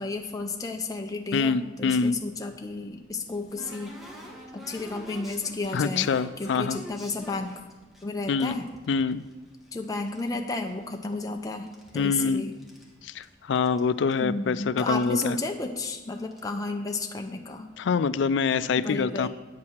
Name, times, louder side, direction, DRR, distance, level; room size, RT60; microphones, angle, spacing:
voice 1, 0.0-4.0 4.5-7.6 8.0-8.6 9.7-11.7 11.9-12.6 14.2-17.7 18.8-19.3, left 3 dB, 20° left, 3 dB, 0.5 m, -32 dB
voice 2, 1.3-2.2 5.7-6.8 8.3-8.6 8.9-9.2 11.9-12.4 13.0-15.4 17.8-19.3, left 5 dB, 75° left, 14 dB, 0.4 m, -25 dB
sound 1, 2.8-8.0 8.5-10.3 10.5-11.3 11.6-12.9 13.2-13.3 13.5-13.8 14.1-14.2 15.0-15.1 15.4-15.6 16.2-16.5, equal, ahead, 1.1 m, -46 dB
9.6 x 4.7 x 7.1 m, 1.2 s
head